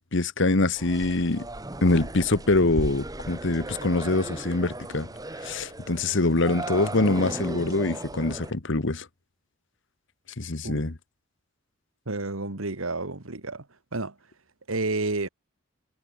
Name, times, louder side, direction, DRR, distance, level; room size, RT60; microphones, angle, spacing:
voice 1, 0.1-1.5 1.8-5.1 5.4-9.1 10.4-11.0, left 2 dB, 60° left, 1.4 m, -24 dB
sound 1, 0.8-8.5, right 1 dB, 20° right, 1.7 m, -36 dB
voice 2, 12.1-13.7 13.9-14.2 14.7-15.3, right 2 dB, 80° right, 2.2 m, -30 dB
head